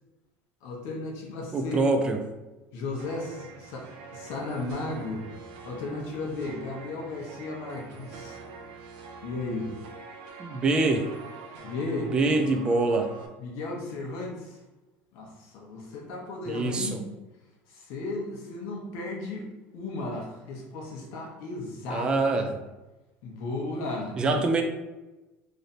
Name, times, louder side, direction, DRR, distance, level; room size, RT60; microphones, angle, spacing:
voice 1, 0.6-1.9 2.7-5.2 5.6-8.4 9.2-9.7 11.6-12.4 13.4-14.6 15.1-17.0 17.7-19.5 19.7-22.5 23.2-24.4, left 2 dB, 55° left, -1 dB, 0.9 m, -35 dB
voice 2, 1.5-2.2 10.4-11.1 12.1-13.1 16.5-17.0 21.9-22.6 24.2-24.6, right 3 dB, 15° right, 5 dB, 0.4 m, -25 dB
sound 1, 3.0-13.3, right 4 dB, 85° right, 0.6 m, -45 dB
3.2 x 2.6 x 4.0 m, 1.1 s
cardioid pair, 175°, 5 cm